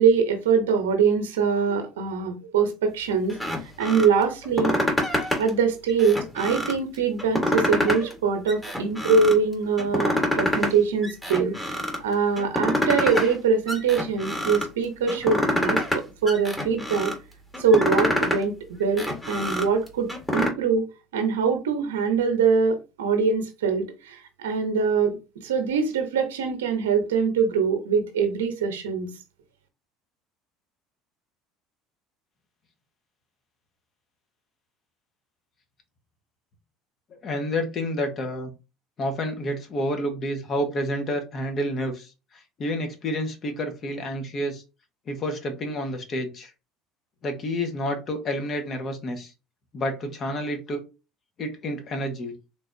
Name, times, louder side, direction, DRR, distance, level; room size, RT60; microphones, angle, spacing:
voice 1, 0.0-3.4 3.8-4.8 5.4-17.1 17.6-20.8 21.1-25.2 25.4-29.1, right 5 dB, 85° right, 0.8 m, -23 dB
sound 1, 3.3-4.1 4.4-5.5 5.9-6.8 7.2-8.2 8.5-9.4 9.8-10.7 11.0-12.0 12.4-13.4 13.7-14.7 15.1-16.0 16.3-17.1 17.5-18.4 18.8-20.5, left 1 dB, 10° left, 1.5 m, -26 dB
voice 2, 37.1-38.5 39.0-44.6 45.1-46.5 47.2-49.3 49.7-50.8 51.4-52.3, equal, 45° left, 1.3 m, -29 dB
3.9 x 3.4 x 2.7 m
hypercardioid pair, 70°, 0 cm